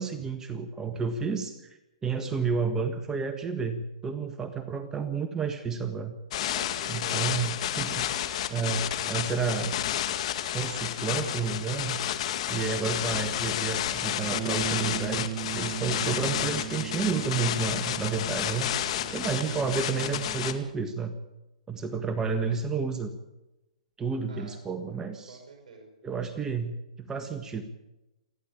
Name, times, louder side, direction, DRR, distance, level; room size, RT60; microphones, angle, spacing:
voice 1, 0.0-6.2 6.9-8.1 8.5-9.8 10.5-12.0 12.5-18.7 19.1-21.1 21.7-23.1 24.0-25.4 26.0-27.6, right 5 dB, 15° right, 8 dB, 1.5 m, -31 dB
sound 1, 6.3-20.5, left 11 dB, 55° left, 2.1 m, -31 dB
voice 2, 6.5-7.3 24.3-24.6 25.3-26.6, right 4 dB, 60° right, 2 dB, 6.5 m, -48 dB
Bass guitar, 14.3-20.6, right 14 dB, 30° right, 1.3 m, -38 dB
27.5 x 11.0 x 8.7 m, 0.99 s
hypercardioid pair, 135°, 4 cm